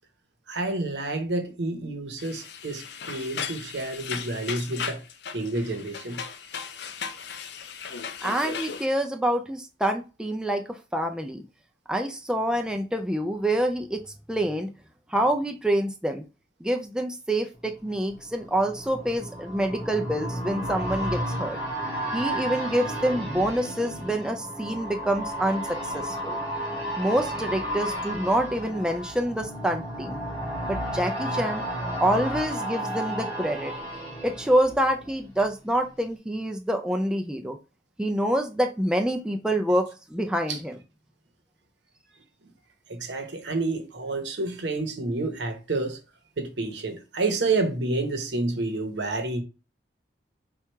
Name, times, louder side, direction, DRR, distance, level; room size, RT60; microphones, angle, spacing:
voice 1, 0.5-5.0 5.3-6.2 40.5-40.6 42.4-42.5 42.9-46.0 46.4-49.4, right 2 dB, 75° right, 0.9 m, -29 dB
sound 1, 2.2-8.9, left 6 dB, 65° left, 0.5 m, -36 dB
voice 2, 8.2-11.4 11.9-14.0 14.3-14.7 15.1-16.2 16.6-21.6 22.1-26.4 27.0-30.2 30.6-31.6 32.0-33.7 34.2-37.6 38.0-40.7, right 1 dB, 5° right, 0.3 m, -26 dB
sound 2, 17.7-35.5 35.8-35.9, right 1 dB, 25° left, 1.7 m, -33 dB
4.5 x 2.4 x 4.5 m
head